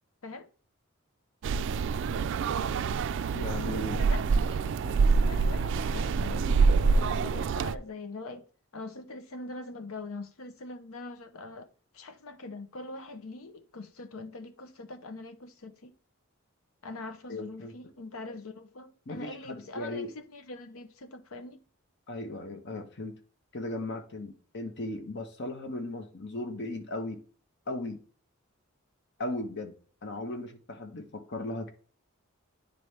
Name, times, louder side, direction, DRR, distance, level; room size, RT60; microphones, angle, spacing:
sound 1, 1.4-7.8, right 4 dB, 60° right, 0.3 m, -26 dB
voice 1, 3.3-4.0 17.3-17.7 19.1-20.1 22.1-23.1 23.5-27.2 27.7-28.0 29.2-29.7 30.0-31.7, left 2 dB, 55° left, 1.1 m, -37 dB
voice 2, 3.9-11.7 11.9-16.0 16.8-21.6, left 2 dB, 80° left, 0.8 m, -43 dB
9.6 x 4.2 x 3.3 m
head